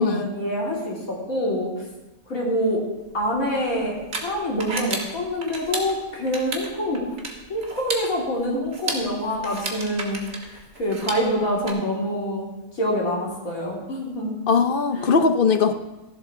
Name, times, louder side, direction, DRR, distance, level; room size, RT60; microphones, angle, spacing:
voice 1, 0.0-1.7 2.3-2.8 3.1-4.0 4.2-7.0 7.5-12.5 12.7-14.3 15.0-15.1, equal, 65° left, -4 dB, 3.3 m, -26 dB
sound 1, 3.0-11.7, right 2 dB, 50° right, 1.8 m, -34 dB
voice 2, 14.5-15.7, left 5 dB, 50° left, 9 dB, 0.7 m, -20 dB
15.0 x 11.5 x 3.6 m, 1.0 s
omnidirectional pair, 1.5 m